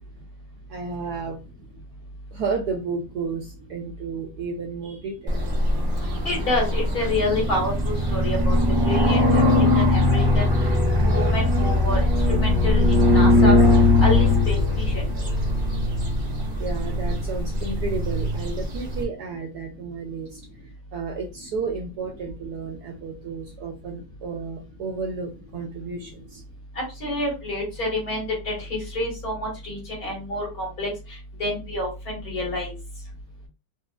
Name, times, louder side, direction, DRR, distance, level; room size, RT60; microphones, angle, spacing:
voice 1, 0.7-1.4 2.3-5.4 16.6-20.4 20.9-26.4, right 4 dB, 70° right, 3 dB, 1.0 m, -32 dB
sound 1, 5.3-19.0, left 2 dB, 50° right, 0.5 m, -20 dB
voice 2, 6.3-8.6 8.8-9.4 9.8-10.5 11.0-12.1 12.4-13.6 14.0-15.0 26.8-32.7, left 1 dB, 50° left, -2 dB, 2.0 m, -28 dB
4.3 x 2.2 x 2.4 m, 0.28 s
omnidirectional pair, 2.0 m